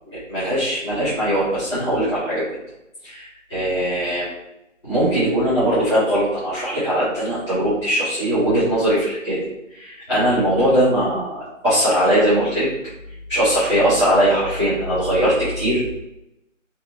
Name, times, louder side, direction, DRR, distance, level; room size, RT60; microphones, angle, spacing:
voice 1, 0.0-2.5 3.0-4.3 4.8-12.7 13.3-15.9, equal, 20° left, -15 dB, 0.7 m, -20 dB
2.6 x 2.6 x 2.5 m, 0.87 s
figure-of-eight pair, 165°, 39 cm